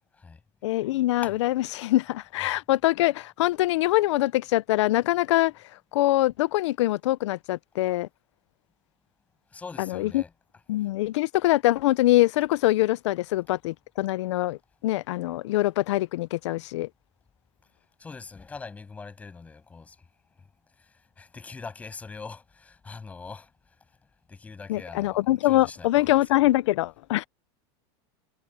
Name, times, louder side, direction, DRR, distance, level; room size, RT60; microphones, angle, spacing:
voice 1, 0.6-5.5 5.9-8.1 9.8-10.2 10.7-14.6 14.8-16.9 24.7-27.2, left 16 dB, 90° left, 0.6 m, -24 dB
voice 2, 9.5-10.3 18.0-20.0 20.8-23.5 24.3-26.2, left 4 dB, 10° left, 6.7 m, -42 dB
supercardioid pair, 180°, 15 cm